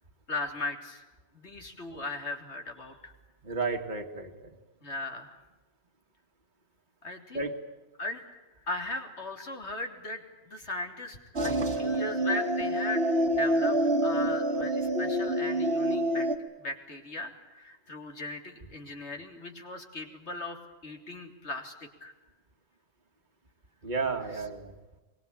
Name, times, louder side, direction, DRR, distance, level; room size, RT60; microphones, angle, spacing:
voice 1, 0.3-1.1 1.3-3.1 4.8-5.3 7.0-7.5 8.0-8.2 8.6-16.3 16.6-20.6 20.8-22.1, left 2 dB, 70° left, 4 dB, 3.6 m, -38 dB
voice 2, 3.4-4.5 7.3-7.6 23.8-24.8, right 4 dB, 40° right, 4 dB, 2.0 m, -32 dB
sound 1, 11.4-16.4, right 1 dB, 60° right, 2.2 m, -27 dB
24.0 x 23.5 x 8.8 m, 1.2 s
omnidirectional pair, 1.2 m